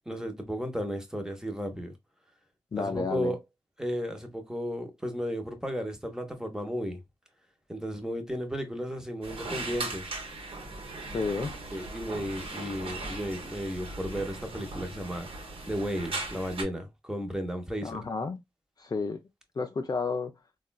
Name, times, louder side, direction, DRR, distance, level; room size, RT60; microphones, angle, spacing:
voice 1, 0.1-2.0 2.8-3.4 3.8-7.0 7.7-10.1 11.7-18.0, equal, 5° right, 0.9 m, -34 dB
voice 2, 2.7-3.3 11.1-11.6 17.8-18.4 18.8-19.2 19.6-20.3, left 4 dB, 40° left, 0.4 m, -31 dB
sound 1, 9.2-16.6, right 2 dB, 65° right, 1.0 m, -38 dB
3.5 x 2.3 x 2.2 m
cardioid pair, 60°, 10 cm